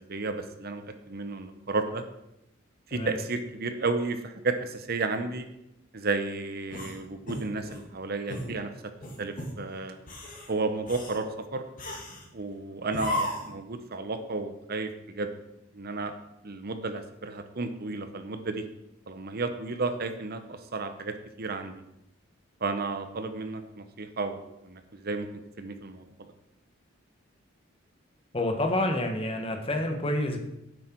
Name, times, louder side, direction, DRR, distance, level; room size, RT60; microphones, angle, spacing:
voice 1, 0.0-2.0 2.9-5.5 5.9-8.7 9.2-10.0 10.5-11.6 12.3-15.4 15.7-16.1 16.4-18.7 19.1-21.7 22.6-25.3 25.6-26.1, right 3 dB, 50° right, 9 dB, 0.8 m, -32 dB
sound 1, 6.7-7.9 8.3-8.5 9.0-9.6 10.0-10.5 10.9-11.2 11.8-12.3 12.9-13.6, left 1 dB, 45° left, 2.2 m, -35 dB
voice 2, 28.3-30.4, left 1 dB, 30° left, 4 dB, 1.4 m, -28 dB
9.7 x 7.9 x 4.6 m, 0.84 s
head